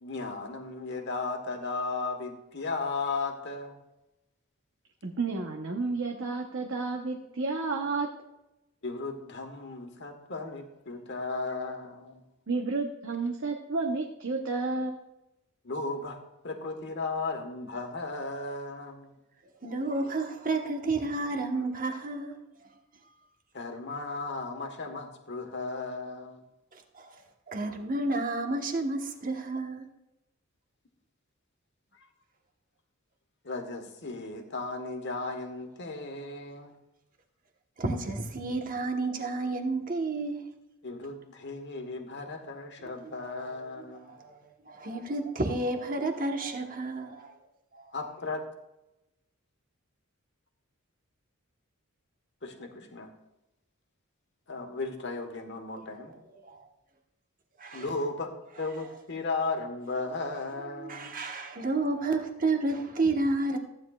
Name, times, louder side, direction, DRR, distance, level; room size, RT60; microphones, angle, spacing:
voice 1, 0.0-3.8 8.8-12.2 15.6-16.2 16.4-19.1 23.5-26.4 33.4-36.7 40.8-44.1 47.9-48.4 52.4-53.1 54.5-56.1 57.7-61.2, left 3 dB, 55° left, 1.3 m, -35 dB
voice 2, 5.0-8.1 12.5-15.0, right 3 dB, 60° right, 0.9 m, -31 dB
voice 3, 19.4-22.8 23.0-23.3 26.7-29.9 37.8-40.5 42.8-47.3 47.7-48.0 55.8-56.7 57.6-57.9 60.7-63.6, right 2 dB, 40° right, 1.2 m, -32 dB
15.0 x 9.6 x 2.4 m
head